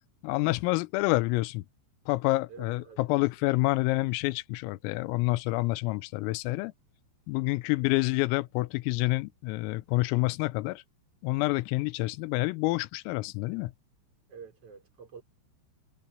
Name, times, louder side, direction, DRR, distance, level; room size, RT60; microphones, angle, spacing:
voice 1, 0.2-1.6 2.1-6.7 7.3-10.8 11.2-13.7, left 21 dB, 90° left, 3.4 m, -28 dB
voice 2, 2.5-3.0 3.4-3.5 14.3-15.2, right 6 dB, 30° right, 4.4 m, -48 dB
omnidirectional pair, 6.0 m